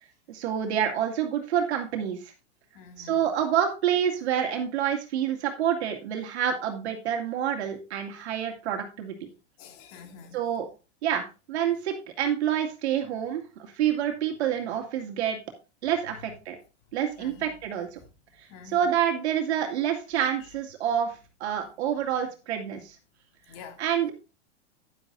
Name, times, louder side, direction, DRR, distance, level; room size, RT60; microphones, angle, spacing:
voice 1, 0.3-2.3 3.0-9.3 10.3-10.7 11.0-11.2 11.5-15.4 15.8-16.6 16.9-18.0 18.7-23.0 23.8-24.1, right 9 dB, 70° right, 2.3 m, -28 dB
voice 2, 2.7-3.2 9.6-10.4 17.2-17.5 18.5-18.9 20.1-20.5 23.5-23.8, left 6 dB, 45° left, 2.4 m, -47 dB
10.5 x 10.0 x 2.6 m
hypercardioid pair, 125°, 34 cm